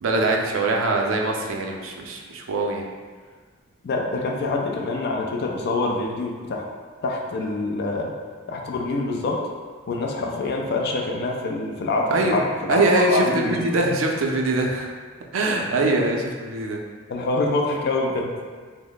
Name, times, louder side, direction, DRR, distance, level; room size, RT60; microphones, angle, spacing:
voice 1, 0.0-2.8 12.1-12.4 12.7-14.9 15.3-16.8, right 2 dB, 70° right, 1 dB, 0.4 m, -23 dB
voice 2, 3.8-6.6 7.0-8.1 8.5-9.4 9.9-13.6 17.1-18.4, left 2 dB, 55° left, 0 dB, 0.4 m, -25 dB
3.0 x 2.0 x 3.9 m, 1.5 s
head